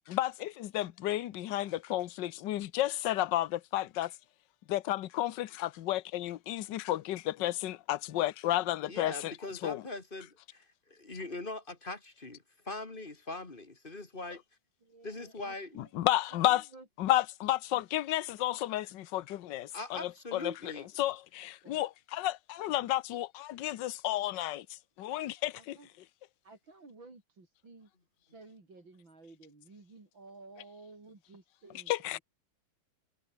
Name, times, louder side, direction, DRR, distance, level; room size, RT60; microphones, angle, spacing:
voice 1, 0.1-4.1 4.7-9.3 9.6-9.8 15.8-16.6 17.0-25.8 31.9-32.2, left 14 dB, 65° left, 1.5 m, -32 dB
voice 2, 8.8-14.4 15.0-15.8 19.7-20.9, left 2 dB, 25° left, 2.3 m, -41 dB
voice 3, 14.8-15.9 16.5-16.9 17.7-17.8 21.6-21.8 25.4-25.9 26.4-27.9 28.3-32.2, right 3 dB, 70° right, 6.0 m, -54 dB
omnidirectional pair, 2.2 m